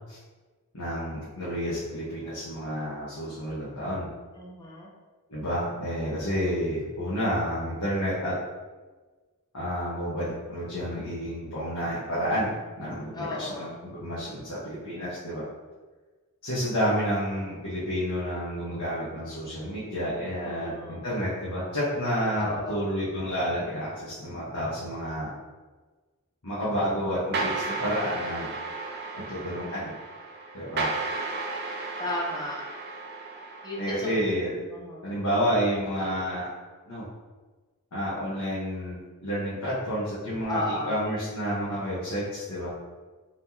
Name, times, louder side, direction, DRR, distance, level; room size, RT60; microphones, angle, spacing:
voice 1, 0.7-4.1 5.3-8.4 9.5-15.4 16.4-25.3 26.4-28.5 29.1-29.9 30.5-30.9 33.8-34.5 35.0-36.5 36.9-37.0 37.9-42.7, equal, 85° left, -11 dB, 1.3 m, -30 dB
voice 2, 4.4-4.9 13.1-13.7 20.4-21.1 22.4-22.9 32.0-32.6 33.6-34.1 34.7-35.1 40.5-41.0, left 2 dB, 20° left, -3 dB, 0.7 m, -34 dB
sound 1, 27.3-34.2, right 3 dB, 45° right, 0.6 m, -34 dB
4.3 x 3.8 x 2.9 m, 1.3 s
head